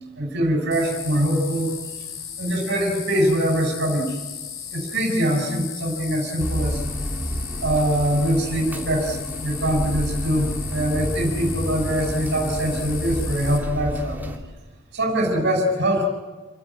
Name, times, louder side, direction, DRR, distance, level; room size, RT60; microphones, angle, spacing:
voice 1, 0.2-1.7 2.4-4.2 4.7-6.8 7.6-14.2 14.9-16.0, right 1 dB, 55° right, 1 dB, 6.3 m, -23 dB
sound 1, 0.7-13.6, left 8 dB, 70° left, 5.1 m, -36 dB
sound 2, 6.4-14.4, equal, 10° right, 3.3 m, -30 dB
29.0 x 18.0 x 9.7 m, 1.3 s
head